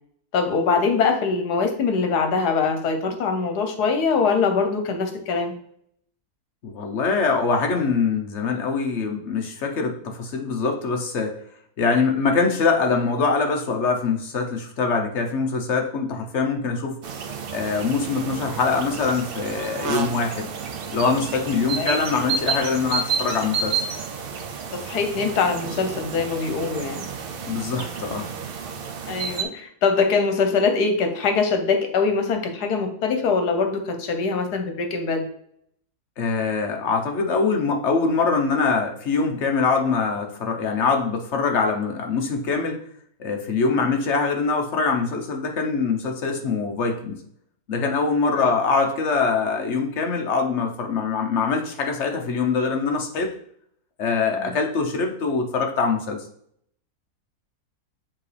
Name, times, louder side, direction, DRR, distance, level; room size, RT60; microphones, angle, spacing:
voice 1, 0.3-5.5 21.8-21.9 24.7-27.0 29.1-35.3 48.3-48.5 54.3-54.6, left 4 dB, 75° left, 6 dB, 1.5 m, -23 dB
voice 2, 6.6-11.4 11.8-17.0 17.5-20.5 20.9-23.8 27.4-28.3 36.2-42.8 43.2-47.2 47.7-53.3 54.0-56.2, left 4 dB, 50° left, 3 dB, 1.1 m, -23 dB
sound 1, 17.0-29.4, right 6 dB, 85° right, 0.5 m, -30 dB
7.4 x 3.8 x 3.3 m, 0.66 s
omnidirectional pair, 1.7 m